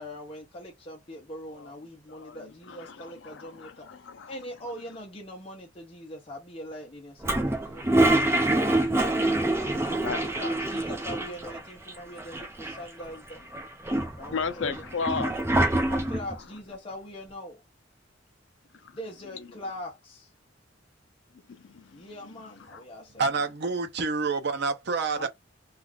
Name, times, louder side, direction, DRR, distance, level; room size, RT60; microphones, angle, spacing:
voice 1, 0.0-3.9 4.3-8.3 9.3-13.4 14.2-15.4 15.9-17.6 18.9-20.3 21.9-23.3 25.1-25.3, left 1 dB, 30° left, 0.7 m, -42 dB
voice 2, 2.1-4.3 10.0-10.3 14.3-15.9 18.8-19.0 19.3-19.4 21.5-22.1 22.7-22.8, left 5 dB, 75° left, 0.5 m, -36 dB
Toilet flush, 7.2-11.6 11.9-12.0 12.2-13.0 13.5-16.4, right 1 dB, 15° right, 0.6 m, -25 dB
voice 3, 23.2-25.3, right 4 dB, 60° right, 0.6 m, -27 dB
2.4 x 2.4 x 3.3 m
head